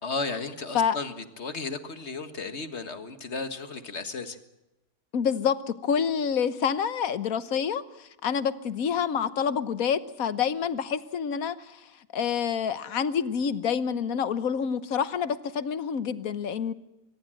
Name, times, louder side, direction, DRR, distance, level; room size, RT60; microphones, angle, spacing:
voice 1, 0.0-4.4, left 3 dB, 45° left, 9 dB, 1.9 m, -34 dB
voice 2, 5.1-16.7, left 7 dB, 70° left, 13 dB, 1.5 m, -28 dB
24.5 x 20.0 x 7.7 m, 0.96 s
omnidirectional pair, 1.6 m